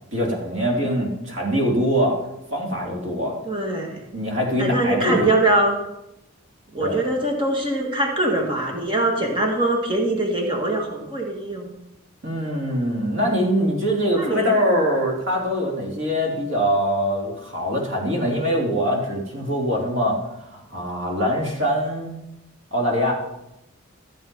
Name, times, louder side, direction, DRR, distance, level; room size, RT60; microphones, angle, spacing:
voice 1, 0.1-2.2 2.5-3.4 4.1-5.3 6.8-7.0 12.2-20.2 20.5-22.2 22.7-23.1, equal, 65° right, -1 dB, 3.1 m, -23 dB
voice 2, 3.4-3.9 4.6-5.8 6.7-11.7 14.2-14.6, right 2 dB, 25° right, 1 dB, 1.8 m, -22 dB
14.0 x 7.8 x 5.4 m, 0.90 s
head